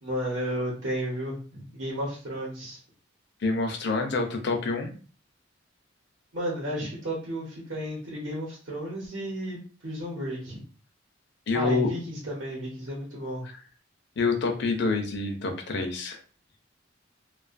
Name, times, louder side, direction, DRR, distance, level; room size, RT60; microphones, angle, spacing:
voice 1, 0.0-2.8 6.3-10.6 11.5-13.5, equal, 85° right, -5 dB, 1.0 m, -33 dB
voice 2, 3.4-4.9 11.5-11.9 14.2-16.2, left 3 dB, 60° left, 4 dB, 0.5 m, -27 dB
2.4 x 2.4 x 2.5 m, 0.39 s
head